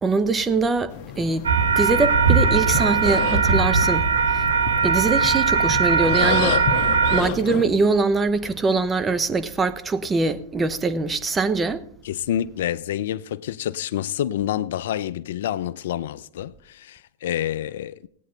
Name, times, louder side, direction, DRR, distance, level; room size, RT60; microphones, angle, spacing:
voice 1, 0.0-1.5 1.8-4.1 4.8-6.6 7.1-11.8, right 3 dB, 20° right, 0.8 m, -23 dB
sound 1, 0.9-7.6, left 10 dB, 50° left, 1.2 m, -31 dB
sound 2, 1.4-7.2, right 5 dB, 90° right, 1.5 m, -20 dB
voice 2, 12.0-18.1, left 11 dB, 70° left, 0.4 m, -28 dB
17.0 x 9.2 x 3.9 m
hypercardioid pair, 110°, 0 cm